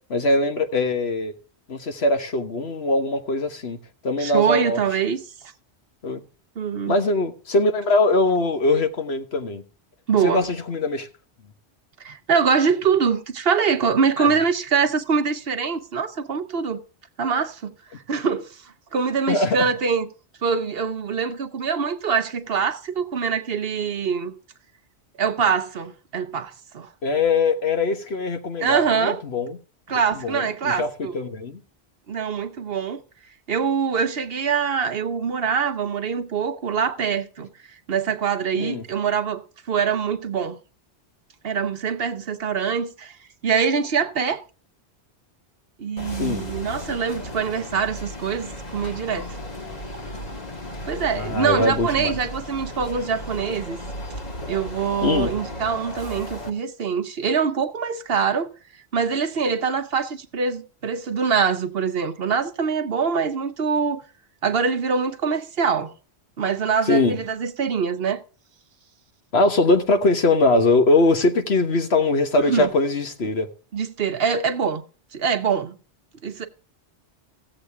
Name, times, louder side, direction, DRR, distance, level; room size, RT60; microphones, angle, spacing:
voice 1, 0.1-1.3 1.7-3.8 4.0-4.8 6.0-6.2 6.9-9.6 10.2-11.1 14.2-14.3 19.3-19.7 27.0-29.6 29.9-31.6 38.6-38.8 46.1-46.4 51.1-52.2 55.0-55.3 66.8-67.2 69.3-73.5, left 2 dB, 70° left, 1.5 m, -22 dB
voice 2, 4.2-5.2 6.6-6.9 10.1-10.5 12.0-16.8 17.2-20.1 20.4-24.3 25.2-26.9 28.6-29.2 29.9-31.2 32.1-33.0 33.5-37.5 37.9-39.4 39.7-40.6 41.4-43.2 43.4-44.4 45.8-49.4 50.9-53.8 54.5-58.5 58.9-64.0 64.4-65.9 66.4-68.2 72.4-72.7 73.7-74.8 75.1-75.8 76.2-76.5, right 6 dB, 60° right, 1.1 m, -24 dB
sound 1, 46.0-56.5, left 1 dB, 40° left, 1.5 m, -35 dB
15.5 x 7.8 x 3.5 m
omnidirectional pair, 1.1 m